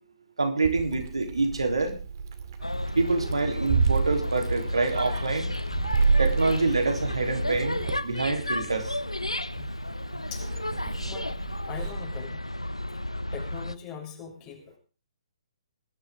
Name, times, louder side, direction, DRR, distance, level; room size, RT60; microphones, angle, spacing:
voice 1, 0.4-2.0 3.0-5.5 6.2-7.8 8.0-9.0, right 3 dB, 70° right, 5 dB, 3.5 m, -26 dB
Meow, 0.6-11.9, right 5 dB, 45° right, 2.4 m, -31 dB
sound 1, 2.6-13.7, left 1 dB, 85° left, 0.7 m, -32 dB
voice 2, 10.9-11.3 11.7-12.4 13.3-14.6, left 7 dB, 25° left, 2 dB, 3.3 m, -41 dB
20.5 x 11.0 x 3.7 m, 0.35 s
figure-of-eight pair, 125°, 3 cm